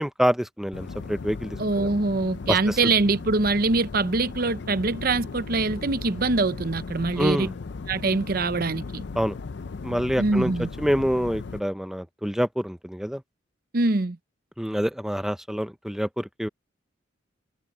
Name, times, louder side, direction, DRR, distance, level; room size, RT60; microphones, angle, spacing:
voice 1, 0.0-1.9 2.5-2.8 7.2-7.5 9.2-9.4 9.8-10.5 10.8-13.2 14.6-16.5, equal, ahead, 0.6 m, -26 dB
sound 1, 0.7-11.6, left 4 dB, 60° left, 0.5 m, -37 dB
voice 2, 1.6-7.5 7.9-9.0 10.2-10.7 13.7-14.2, right 3 dB, 50° right, 0.8 m, -24 dB
head